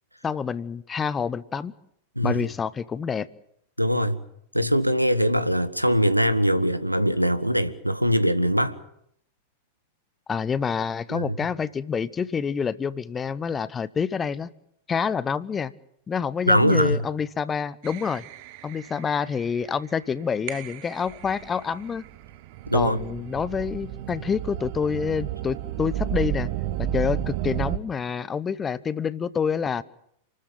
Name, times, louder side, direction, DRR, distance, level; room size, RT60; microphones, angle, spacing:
voice 1, 0.2-1.7 2.2-3.3 10.3-14.5 14.9-15.7 16.1-18.2 18.6-22.1 22.7-26.5 26.8-29.8, left 6 dB, 20° left, 0.8 m, -27 dB
voice 2, 3.8-4.2 4.5-8.7 11.1-11.3 16.5-17.0 22.7-23.0, equal, 90° right, 1.4 m, -22 dB
sound 1, 17.8-19.7 20.5-27.8, right 12 dB, 45° right, 1.4 m, -32 dB
28.5 x 13.0 x 9.3 m
figure-of-eight pair, 90°, 0 cm